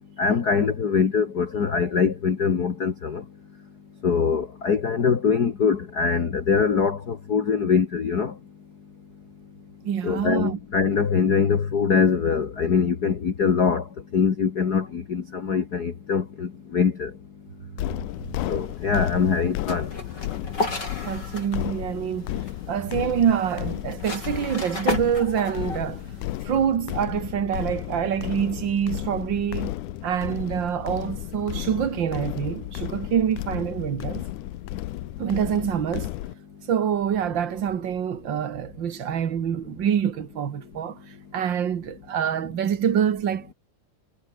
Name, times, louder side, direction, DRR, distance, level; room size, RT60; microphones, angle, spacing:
voice 1, 0.2-3.2 4.0-8.3 10.0-13.9 14.1-17.1 18.5-19.9, left 6 dB, 60° left, 1.0 m, -23 dB
voice 2, 9.8-10.6 21.0-22.3 22.7-26.0 26.4-29.7 30.0-34.3 35.2-36.1 36.7-41.0 41.3-43.5, right 8 dB, 75° right, 1.0 m, -26 dB
sound 1, 17.8-36.3, left 16 dB, 75° left, 1.9 m, -33 dB
sound 2, 18.1-26.4, left 2 dB, 25° left, 6.8 m, -35 dB
omnidirectional pair, 4.4 m